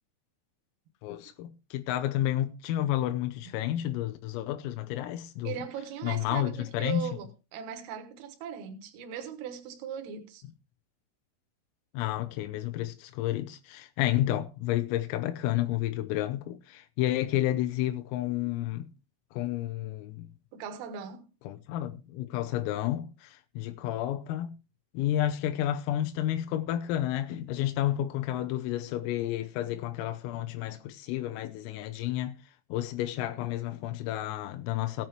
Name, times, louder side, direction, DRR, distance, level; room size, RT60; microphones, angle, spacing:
voice 1, 1.0-5.5 6.0-7.1 12.0-18.9 19.3-20.3 21.5-24.5 25.0-32.4 32.7-35.1, left 13 dB, 90° left, 3.5 m, -31 dB
voice 2, 5.5-10.4 20.5-21.3, right 8 dB, 80° right, 4.0 m, -39 dB
17.0 x 9.4 x 3.1 m
omnidirectional pair, 6.0 m